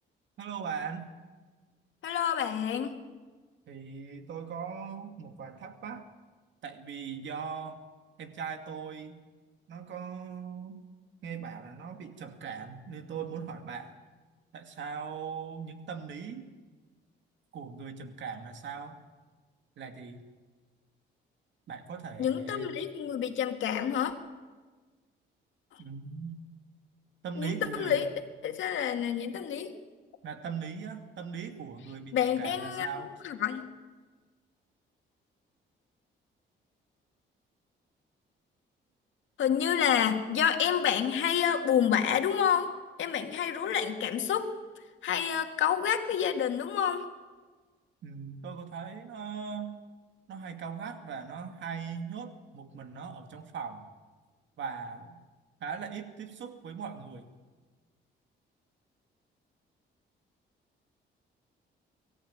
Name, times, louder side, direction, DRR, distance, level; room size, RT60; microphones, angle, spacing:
voice 1, 0.4-1.1 3.7-6.1 6.6-7.8 8.2-9.2 9.7-10.8 11.2-13.9 14.5-16.5 17.5-19.0 19.8-20.2 21.7-22.8 25.8-26.4 27.2-28.0 30.2-33.2 48.0-49.8 50.3-53.9 54.6-55.2 55.6-57.3, right 6 dB, 70° right, 6 dB, 2.4 m, -40 dB
voice 2, 2.0-3.0 22.2-24.1 27.4-28.1 28.4-29.7 32.1-32.9 33.2-33.7 39.4-42.7 43.0-44.5 45.0-47.1, left 8 dB, 75° left, 5 dB, 2.0 m, -28 dB
23.5 x 14.0 x 8.9 m, 1.3 s
cardioid pair, 90°, 20 cm